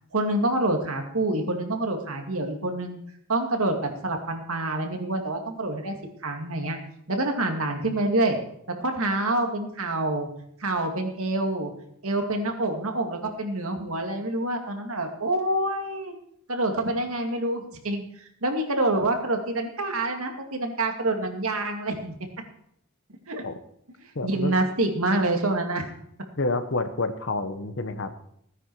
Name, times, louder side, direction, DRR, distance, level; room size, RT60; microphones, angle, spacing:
voice 1, 0.1-3.0 3.3-6.0 6.2-6.8 7.1-8.4 8.8-10.3 10.6-11.7 12.0-16.1 16.5-22.1 23.3-23.4 24.2-25.9, right 2 dB, 70° right, 4 dB, 2.2 m, -27 dB
voice 2, 24.1-24.6 26.4-28.1, left 3 dB, 55° left, 9 dB, 1.1 m, -28 dB
16.5 x 9.9 x 4.7 m, 0.70 s
head